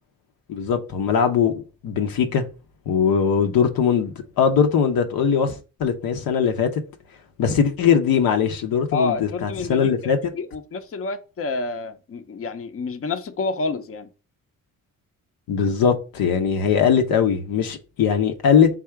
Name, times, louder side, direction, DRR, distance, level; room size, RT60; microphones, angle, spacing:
voice 1, 0.5-2.4 2.9-6.8 7.4-10.3 15.5-18.7, left 7 dB, 80° left, 0.7 m, -20 dB
voice 2, 8.9-14.1, left 3 dB, 40° left, 0.6 m, -29 dB
3.6 x 2.7 x 4.4 m
cardioid pair, 60°, 35 cm